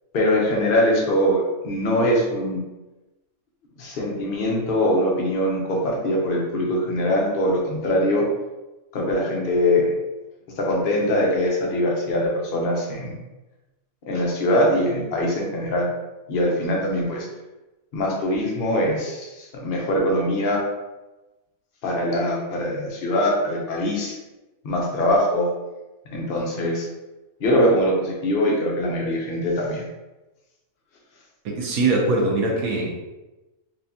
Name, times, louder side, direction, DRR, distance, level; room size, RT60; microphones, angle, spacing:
voice 1, 0.1-2.6 3.8-8.2 8.9-9.9 10.6-13.2 14.1-15.9 16.3-17.3 17.9-20.6 21.8-24.2 24.6-25.5 26.1-26.9 27.4-29.9, left 1 dB, 50° left, -2 dB, 0.8 m, -22 dB
voice 2, 31.4-32.9, right 2 dB, 90° right, -1 dB, 1.3 m, -22 dB
4.2 x 2.3 x 2.7 m, 1.1 s
omnidirectional pair, 1.5 m